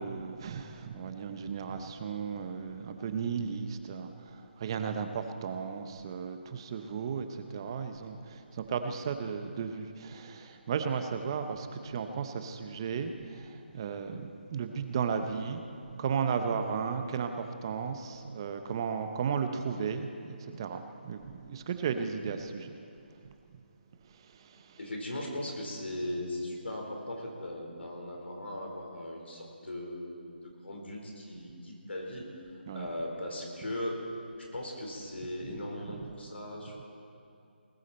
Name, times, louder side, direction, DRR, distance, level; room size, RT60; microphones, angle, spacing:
voice 1, 0.0-15.6 15.9-22.8 23.2-23.3 24.2-24.8 32.7-32.9, right 6 dB, 25° right, 7 dB, 0.7 m, -35 dB
voice 2, 24.8-34.0 34.5-36.9, left 1 dB, 90° left, -1 dB, 4.3 m, -38 dB
19.5 x 13.5 x 4.4 m, 2.5 s
hypercardioid pair, 170°, 6 cm